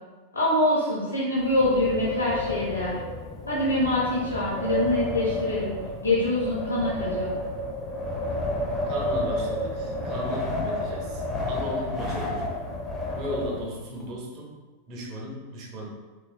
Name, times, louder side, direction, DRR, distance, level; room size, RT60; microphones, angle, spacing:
voice 1, 0.3-3.0 3.5-5.7 6.0-7.3, left 1 dB, 75° left, -7 dB, 0.6 m, -25 dB
Wind, 1.4-14.0, left 1 dB, 15° left, 0.4 m, -31 dB
voice 2, 8.8-12.5 13.1-14.5 14.9-15.9, equal, 40° right, -2 dB, 0.6 m, -36 dB
2.9 x 2.2 x 2.4 m, 1.3 s
figure-of-eight pair, 90°, 0 cm